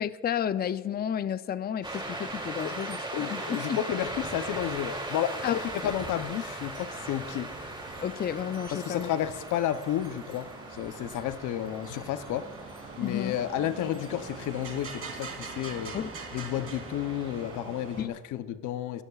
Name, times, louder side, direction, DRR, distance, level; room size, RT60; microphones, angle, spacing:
voice 1, 0.0-3.4 3.7-3.8 5.4-5.9 8.0-9.1 13.0-13.4 15.9-16.1 18.0-18.1, left 9 dB, 30° left, 14 dB, 0.5 m, -32 dB
sound 1, 1.8-17.6, right 1 dB, 15° right, 2.6 m, -40 dB
voice 2, 3.1-7.5 8.7-12.5 13.0-15.9 16.3-19.0, left 11 dB, 80° left, 11 dB, 0.7 m, -32 dB
sound 2, 6.8-18.1, right 4 dB, 50° right, 2.8 m, -44 dB
22.5 x 12.5 x 2.4 m, 1.3 s
cardioid pair, 90°, 30 cm